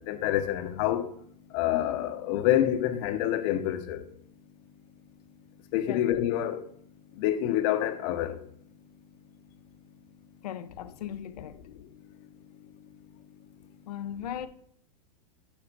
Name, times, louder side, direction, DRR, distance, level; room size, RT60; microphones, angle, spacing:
voice 1, 0.1-1.1 1.5-4.0 5.7-6.6 7.2-8.4, left 12 dB, 50° left, 0.9 m, -27 dB
voice 2, 10.4-11.7 13.9-14.5, left 10 dB, 75° left, 0.6 m, -37 dB
6.1 x 5.6 x 5.3 m
hypercardioid pair, 120°, 21 cm